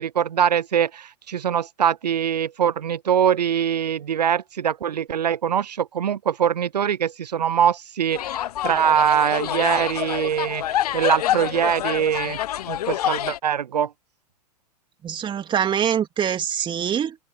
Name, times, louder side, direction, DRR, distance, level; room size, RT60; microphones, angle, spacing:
voice 1, 0.0-12.4 12.7-13.9, right 9 dB, 80° right, 0.5 m, -23 dB
sound 1, 8.1-13.4, left 12 dB, 65° left, 0.6 m, -27 dB
voice 2, 15.0-17.2, right 9 dB, 25° right, 3.3 m, -24 dB
figure-of-eight pair, 105°, 21 cm